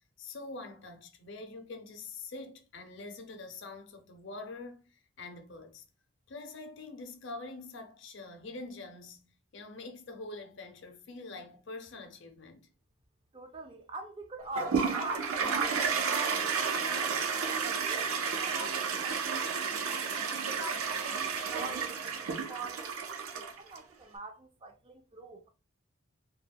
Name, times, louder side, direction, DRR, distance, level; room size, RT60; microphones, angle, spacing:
voice 1, 0.0-5.8 6.3-12.7, left 3 dB, 55° left, 0.5 m, -45 dB
voice 2, 13.3-17.0 17.5-20.0 20.5-25.5, right 2 dB, 25° right, 0.3 m, -44 dB
Toilet flush, 14.6-23.8, right 6 dB, 85° right, 0.5 m, -32 dB
2.2 x 2.1 x 3.3 m
head